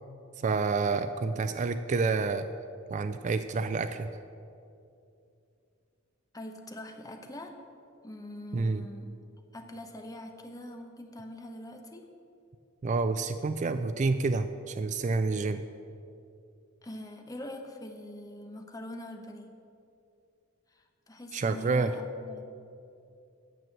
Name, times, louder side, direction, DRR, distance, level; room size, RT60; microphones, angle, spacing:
voice 1, 0.4-2.5 2.9-4.1 8.5-8.9 12.8-15.6 21.3-21.9, right 4 dB, 35° right, 10 dB, 0.3 m, -28 dB
voice 2, 6.3-7.6 8.0-9.1 9.5-12.1 16.8-19.5 20.7-22.5, left 1 dB, 15° left, 4 dB, 0.9 m, -43 dB
9.3 x 7.6 x 7.6 m, 2.6 s
head